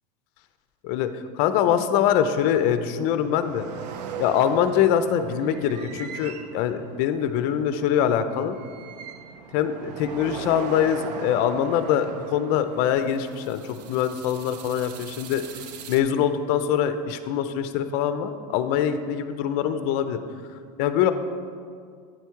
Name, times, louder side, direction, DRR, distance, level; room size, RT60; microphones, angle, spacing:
voice 1, 0.8-3.7 4.2-8.6 9.5-13.6 13.9-15.4 15.9-20.2 20.8-21.1, left 9 dB, 45° left, 10 dB, 0.4 m, -23 dB
sound 1, 3.2-16.0, right 6 dB, 75° right, 0.5 m, -39 dB
8.9 x 3.5 x 4.5 m, 2.2 s
supercardioid pair, 130°, 21 cm